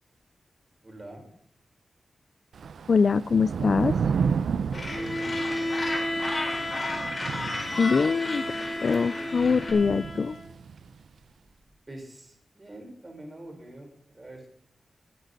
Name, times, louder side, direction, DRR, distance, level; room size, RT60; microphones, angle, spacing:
voice 1, 0.8-1.3 4.9-6.0 11.9-14.5, right 1 dB, 30° right, 2 dB, 5.2 m, -45 dB
Thunder / Rain, 2.5-10.9, right 6 dB, 90° right, 0.6 m, -32 dB
voice 2, 2.9-4.0 7.8-8.4 8.8-10.4, left 5 dB, 60° left, 18 dB, 0.4 m, -23 dB
Gull seagull, 4.7-9.7, left 2 dB, 45° left, 4.7 m, -35 dB
Bowed string instrument, 4.9-10.5, left 1 dB, 20° left, 3.4 m, -33 dB
20.5 x 9.3 x 4.1 m, 0.68 s
wide cardioid pair, 80°, 0 cm